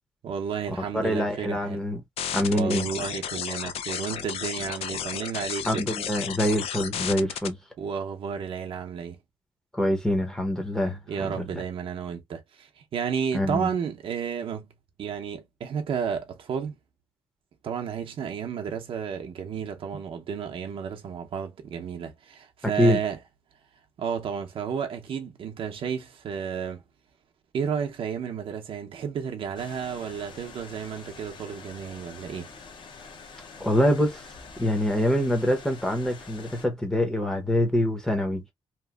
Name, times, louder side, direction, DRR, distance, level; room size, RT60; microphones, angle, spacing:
voice 1, 0.2-1.8 2.5-5.9 7.8-9.2 11.1-14.7 15.0-16.8 17.6-23.2 24.0-26.8 27.5-32.5, right 7 dB, 65° right, 0.6 m, -32 dB
voice 2, 0.9-2.0 2.3-2.9 5.7-7.6 9.7-11.6 13.3-13.7 22.8-23.0 33.6-34.3 34.6-38.4, equal, 5° left, 0.6 m, -25 dB
sound 1, 2.2-7.5, left 9 dB, 85° left, 0.4 m, -33 dB
sound 2, 29.5-36.7, left 4 dB, 55° left, 0.7 m, -46 dB
2.8 x 2.4 x 2.2 m
wide cardioid pair, 160°, 10 cm